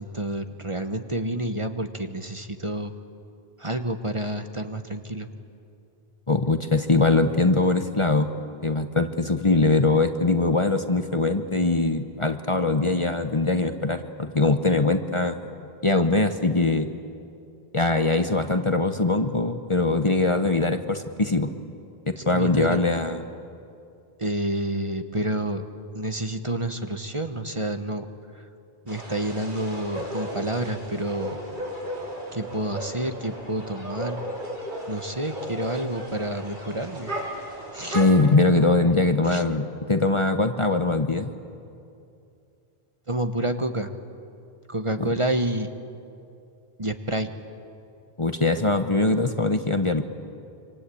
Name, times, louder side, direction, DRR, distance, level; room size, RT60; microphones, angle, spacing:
voice 1, 0.0-3.0 3.6-5.3 22.2-22.8 24.2-25.7 25.9-28.1 28.3-28.5 28.8-31.4 32.3-34.2 34.9-37.1 37.7-38.0 38.8-39.0 39.3-39.4 43.1-43.9 44.7-45.7 46.8-47.3, right 1 dB, 30° right, 7 dB, 1.2 m, -29 dB
voice 2, 6.3-8.3 8.6-15.4 15.8-16.9 17.7-21.5 22.1-23.2 37.9-41.3 48.2-50.0, left 2 dB, 30° left, 7 dB, 1.1 m, -22 dB
sound 1, 28.9-38.3, equal, 50° right, 4.5 m, -35 dB
26.5 x 26.0 x 8.6 m, 2.6 s
omnidirectional pair, 1.0 m